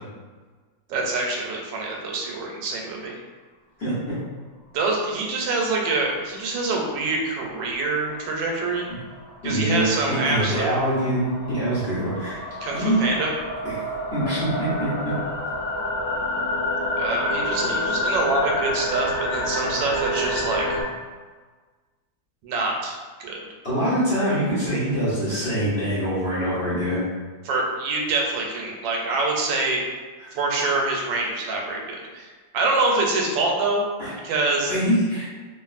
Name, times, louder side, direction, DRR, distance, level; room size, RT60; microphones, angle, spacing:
voice 1, 0.9-3.1 4.7-8.9 9.4-10.7 12.6-13.3 17.0-20.8 22.4-23.4 27.4-29.8 30.3-33.8 34.2-34.7, right 3 dB, 90° right, -1 dB, 1.3 m, -25 dB
voice 2, 3.8-4.1 9.4-12.5 12.7-13.0 13.6-13.8 14.1-15.2 23.6-27.0 34.0-34.1 34.7-35.4, right 1 dB, 45° left, -10 dB, 1.0 m, -24 dB
sound 1, 8.1-20.8, left 1 dB, 75° left, 0.7 m, -28 dB
3.0 x 2.5 x 2.4 m, 1.4 s
omnidirectional pair, 2.0 m